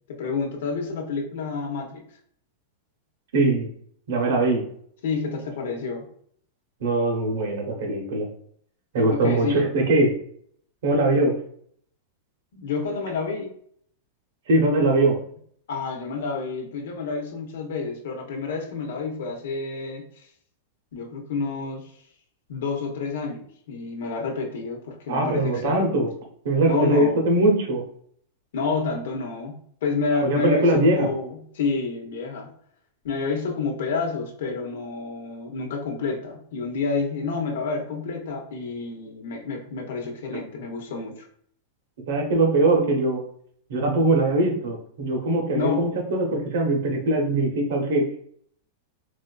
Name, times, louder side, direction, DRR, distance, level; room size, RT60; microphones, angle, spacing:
voice 1, 0.1-2.0 5.0-6.1 9.0-9.7 12.5-13.5 15.7-20.1 20.9-21.9 22.5-26.0 26.6-27.3 28.5-32.5 33.0-41.3 45.5-46.0, left 4 dB, 75° left, 2 dB, 0.8 m, -29 dB
voice 2, 3.3-3.7 4.1-4.6 6.8-8.3 8.9-10.1 10.8-11.3 14.5-15.2 25.1-26.1 26.4-27.8 30.2-31.1 42.1-43.2 43.7-48.1, right 2 dB, 75° right, 2 dB, 0.9 m, -21 dB
4.1 x 2.5 x 2.3 m, 0.63 s
supercardioid pair, 150°, 0 cm